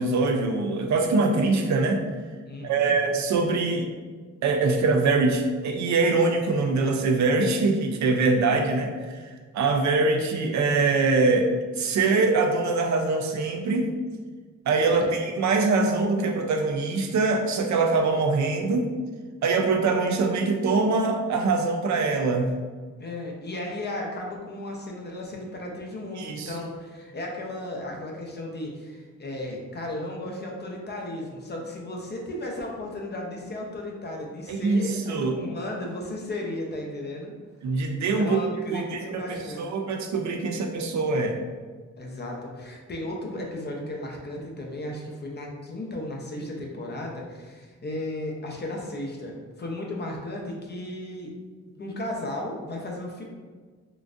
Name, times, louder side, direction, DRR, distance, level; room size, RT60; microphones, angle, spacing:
voice 1, 0.0-2.0 2.6-3.9 4.4-13.9 14.7-18.9 19.4-22.6 26.2-26.5 34.5-35.4 37.6-38.4 38.7-41.4, right 3 dB, 70° right, 3 dB, 0.5 m, -23 dB
voice 2, 2.5-3.0 15.0-15.2 23.0-37.3 38.1-39.6 42.0-51.3 51.8-53.2, left 1 dB, 35° left, -1 dB, 0.6 m, -35 dB
3.8 x 2.4 x 2.4 m, 1.5 s
wide cardioid pair, 120°, 29 cm